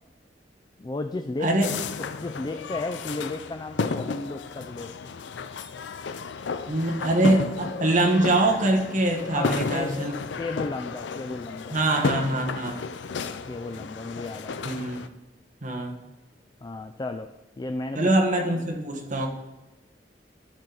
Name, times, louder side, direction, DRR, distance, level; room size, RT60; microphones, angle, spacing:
voice 1, 0.8-1.5 2.2-4.9 9.3-10.0 10.4-11.8 13.3-14.8 16.6-17.3 17.6-18.1, left 2 dB, 25° left, 7 dB, 0.3 m, -33 dB
sound 1, 1.6-15.1, left 4 dB, 90° left, 0.5 m, -33 dB
voice 2, 6.7-10.1 11.7-12.8 14.6-15.0 15.6-16.0 17.9-19.3, right 1 dB, 45° right, 2 dB, 1.2 m, -23 dB
13.0 x 4.5 x 3.9 m, 1.1 s
head